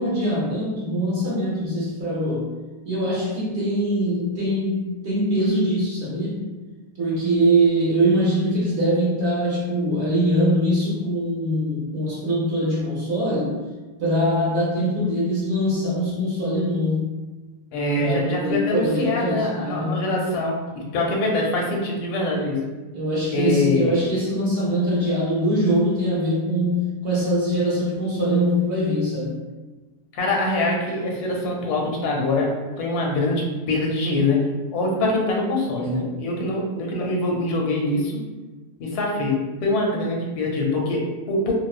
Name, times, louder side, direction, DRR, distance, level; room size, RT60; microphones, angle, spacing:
voice 1, 0.0-2.5 2.8-6.5 7.0-13.6 14.0-17.1 18.0-20.0 22.9-29.3 35.8-36.1, equal, 60° right, -7 dB, 0.8 m, -23 dB
voice 2, 17.7-22.7 23.3-24.0 30.1-32.5 32.8-38.2 38.8-41.5, left 2 dB, 85° left, -1 dB, 1.1 m, -24 dB
2.6 x 2.0 x 2.3 m, 1.2 s
omnidirectional pair, 1.6 m